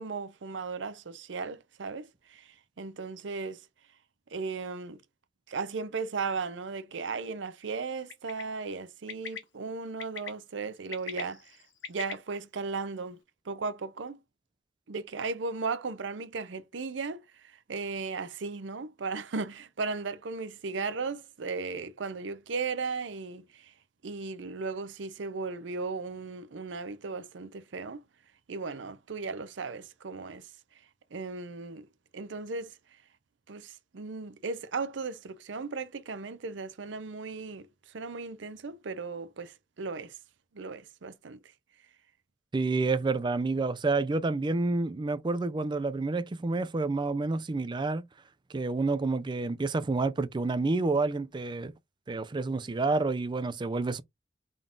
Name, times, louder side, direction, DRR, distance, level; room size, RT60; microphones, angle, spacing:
voice 1, 0.0-3.6 4.3-5.0 5.5-11.6 11.9-13.2 13.5-14.2 14.9-23.7 24.0-28.0 28.5-30.5 31.1-31.9 32.1-32.7 33.5-37.7 37.9-40.2 40.5-41.4, right 4 dB, 75° right, 0.6 m, -36 dB
Bird, 8.1-8.4 9.1-9.4 10.0-10.3 10.8-12.1, left 6 dB, 85° left, 1.0 m, -39 dB
voice 2, 42.5-48.0 48.5-51.7 52.1-54.0, right 3 dB, 25° right, 0.4 m, -29 dB
3.8 x 3.6 x 2.4 m
head